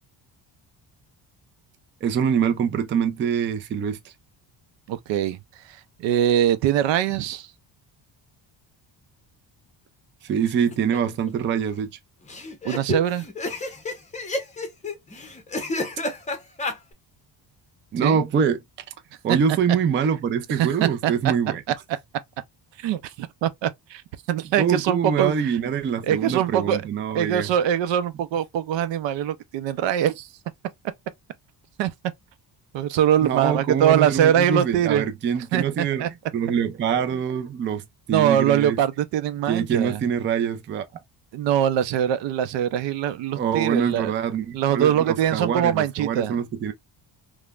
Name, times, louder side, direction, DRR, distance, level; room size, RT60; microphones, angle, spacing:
voice 1, 2.0-4.1 10.2-11.9 17.9-18.6 19.2-21.6 24.6-27.5 33.2-36.0 36.3-38.8 39.5-40.8 43.4-46.7, right 7 dB, 30° right, 0.3 m, -24 dB
voice 2, 4.9-5.4 6.0-7.5 12.6-13.3 18.0-18.2 20.5-21.1 22.8-24.0 24.3-25.3 26.1-26.8 27.1-30.3 31.8-31.9 32.7-35.0 35.5-36.1 38.1-40.0 41.3-44.1 44.5-46.4, right 10 dB, 75° right, 0.5 m, -22 dB
sound 1, 10.5-11.0 11.3-11.4 11.5-11.6 12.3-16.8, left 2 dB, 15° left, 0.6 m, -30 dB
3.1 x 2.1 x 2.2 m
cardioid pair, 130°, 45 cm